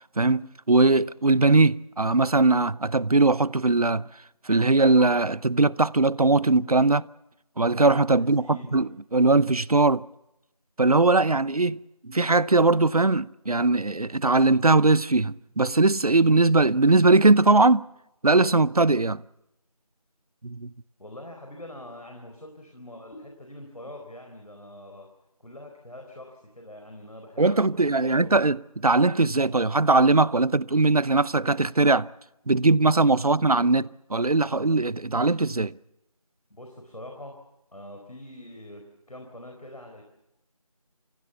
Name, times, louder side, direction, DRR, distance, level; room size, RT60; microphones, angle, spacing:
voice 1, 0.2-4.0 4.5-7.1 7.6-10.0 10.8-17.9 18.2-19.2 20.4-20.7 27.4-32.1 32.5-35.7, right 3 dB, 75° right, 0.7 m, -20 dB
voice 2, 8.2-8.9 21.0-25.1 25.4-28.4 29.4-29.7 36.5-37.4 37.7-40.0, left 1 dB, 80° left, 4.5 m, -44 dB
28.5 x 16.5 x 7.1 m
figure-of-eight pair, 180°, 19 cm